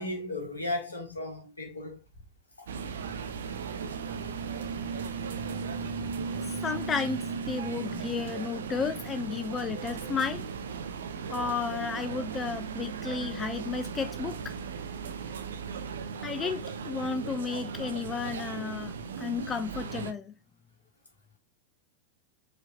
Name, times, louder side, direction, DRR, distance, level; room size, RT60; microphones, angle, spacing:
voice 1, 0.0-2.0 2.6-2.7, left 2 dB, 80° left, 1.3 m, -35 dB
sound 1, 2.7-20.1, right 5 dB, 65° right, 0.4 m, -36 dB
voice 2, 6.6-7.2 7.5-10.4 11.3-14.5 16.2-20.3, left 5 dB, 20° left, 0.3 m, -33 dB
4.8 x 2.7 x 2.7 m
figure-of-eight pair, 90°, 0 cm